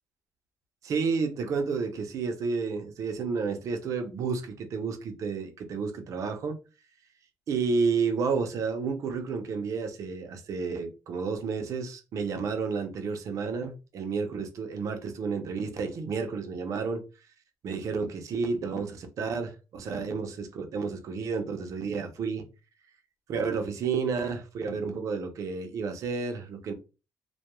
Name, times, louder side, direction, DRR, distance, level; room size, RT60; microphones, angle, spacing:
voice 1, 0.8-6.6 7.5-17.0 17.6-22.5 23.3-26.7, right 5 dB, 55° right, 0.5 m, -31 dB
2.2 x 2.2 x 2.9 m
cardioid pair, 165°, 7 cm